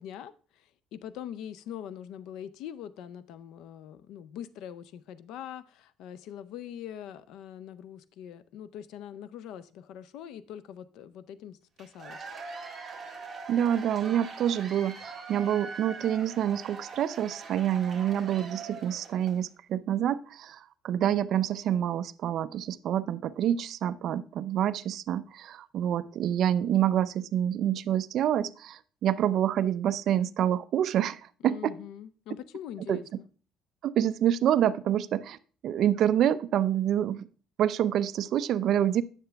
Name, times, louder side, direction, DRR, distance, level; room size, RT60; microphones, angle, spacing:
voice 1, 0.0-12.2 31.4-33.3, left 10 dB, 65° left, 0.5 m, -43 dB
Cheering / Applause / Crowd, 11.8-19.4, right 4 dB, 15° right, 1.8 m, -43 dB
voice 2, 13.5-31.7 32.9-33.0 33.8-35.4 35.6-37.3 37.6-39.0, right 10 dB, 50° right, 0.4 m, -27 dB
9.8 x 6.7 x 3.4 m
cardioid pair, 165°, 0 cm